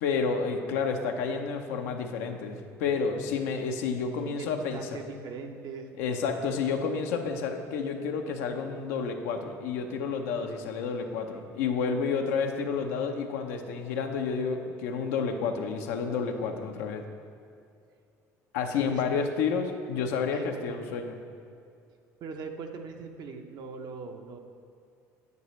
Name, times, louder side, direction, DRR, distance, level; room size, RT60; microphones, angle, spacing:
voice 1, 0.0-5.0 6.0-17.0 18.5-21.2, left 5 dB, 80° left, 4 dB, 0.8 m, -30 dB
voice 2, 4.4-5.9 18.9-19.2 20.3-20.8 22.2-24.4, right 4 dB, 55° right, 4 dB, 0.8 m, -41 dB
9.5 x 8.6 x 3.2 m, 2.4 s
hypercardioid pair, 70°, 8 cm